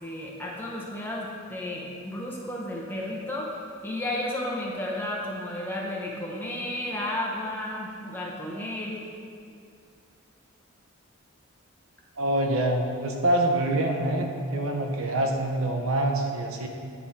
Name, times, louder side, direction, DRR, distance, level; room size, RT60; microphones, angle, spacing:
voice 1, 0.0-3.5 3.8-9.0, left 1 dB, 10° left, -3 dB, 0.8 m, -33 dB
voice 2, 12.2-16.7, right 1 dB, 70° right, 3 dB, 0.7 m, -25 dB
9.5 x 3.6 x 4.2 m, 2.4 s
head